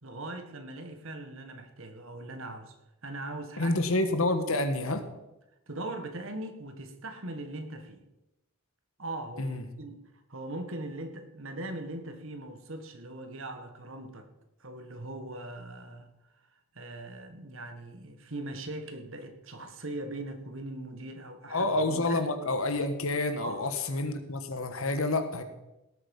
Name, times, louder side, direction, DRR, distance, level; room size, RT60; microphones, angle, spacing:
voice 1, 0.0-2.8 3.0-3.8 4.0-4.1 5.7-8.0 9.0-10.0 10.3-14.3 14.6-16.1 16.7-22.2 23.4-23.7, right 2 dB, 60° right, 7 dB, 1.8 m, -40 dB
voice 2, 3.6-5.0 9.4-9.6 21.5-25.4, left 2 dB, 70° left, 8 dB, 1.6 m, -28 dB
18.0 x 8.7 x 5.5 m, 0.95 s
head